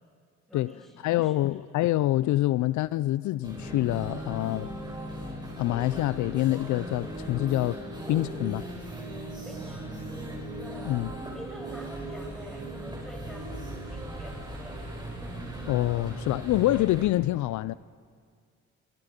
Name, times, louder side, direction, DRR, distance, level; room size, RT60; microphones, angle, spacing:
voice 1, 0.5-1.6 9.4-10.1 10.6-11.0 11.3-14.8, equal, ahead, 6.8 m, -47 dB
voice 2, 1.0-4.7 5.6-7.8 8.1-8.7 10.9-11.1 15.7-17.7, left 16 dB, 75° left, 0.4 m, -26 dB
sound 1, 3.4-17.1, right 1 dB, 15° right, 6.2 m, -38 dB
24.5 x 23.0 x 5.2 m
cardioid pair, 90°, 30 cm